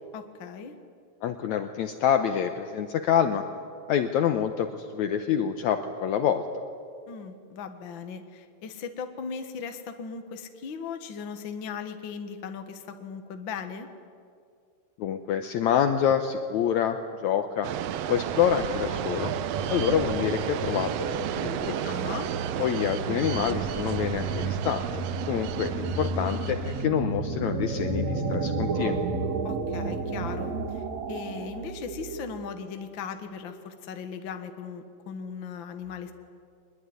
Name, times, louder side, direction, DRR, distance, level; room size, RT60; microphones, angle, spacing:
voice 1, 0.1-0.8 7.1-13.9 21.8-22.3 29.4-36.1, left 6 dB, 50° left, 7 dB, 1.6 m, -38 dB
voice 2, 1.2-3.4 3.9-6.4 15.0-17.7 18.1-19.3 19.7-21.1 21.4-21.8 22.6-24.9 25.3-29.0, left 8 dB, 70° left, 7 dB, 2.0 m, -27 dB
sound 1, 17.6-26.9, right 11 dB, 80° right, 1.5 m, -33 dB
sound 2, 18.4-32.5, right 3 dB, 55° right, 2.7 m, -32 dB
22.5 x 21.5 x 9.5 m, 2.3 s
omnidirectional pair, 3.9 m